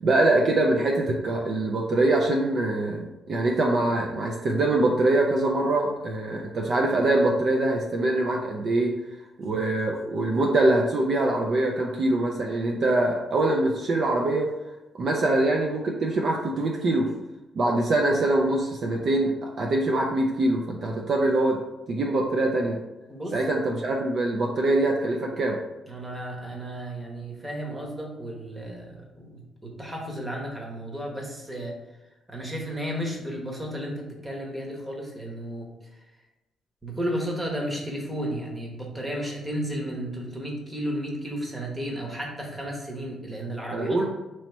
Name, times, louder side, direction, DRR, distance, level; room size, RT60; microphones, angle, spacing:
voice 1, 0.0-9.0 9.4-14.5 15.0-17.1 17.5-21.6 21.9-22.8 23.3-25.6 43.7-44.1, right 2 dB, 55° right, 0 dB, 0.4 m, -24 dB
voice 2, 25.9-31.8 32.3-35.7 36.8-44.1, equal, 15° right, -1 dB, 1.0 m, -33 dB
3.0 x 2.9 x 4.3 m, 1.0 s
cardioid pair, 90°, 0 cm